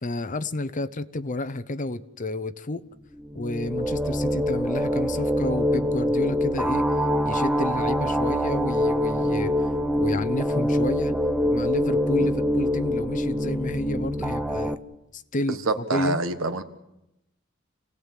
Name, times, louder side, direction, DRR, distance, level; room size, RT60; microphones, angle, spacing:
voice 1, 0.0-2.8 3.3-6.9 7.2-9.5 10.0-11.1 11.5-14.8 15.1-16.2, left 2 dB, 40° left, 0.8 m, -30 dB
sound 1, 3.2-14.7, equal, 5° right, 0.8 m, -25 dB
voice 2, 15.5-16.6, right 3 dB, 80° right, 1.5 m, -27 dB
27.5 x 18.0 x 7.5 m
head